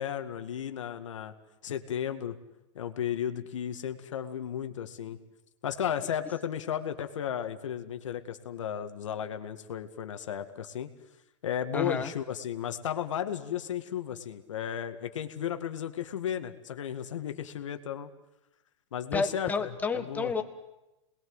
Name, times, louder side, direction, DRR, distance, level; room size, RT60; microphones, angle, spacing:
voice 1, 0.0-1.3 1.6-2.4 2.7-5.2 5.6-10.9 11.4-18.1 18.9-20.3, left 9 dB, 85° left, 8 dB, 2.1 m, -34 dB
voice 2, 11.7-12.1 19.1-20.4, left 4 dB, 10° left, 7 dB, 1.6 m, -30 dB
27.5 x 21.0 x 8.0 m, 0.97 s
hypercardioid pair, 145°, 16 cm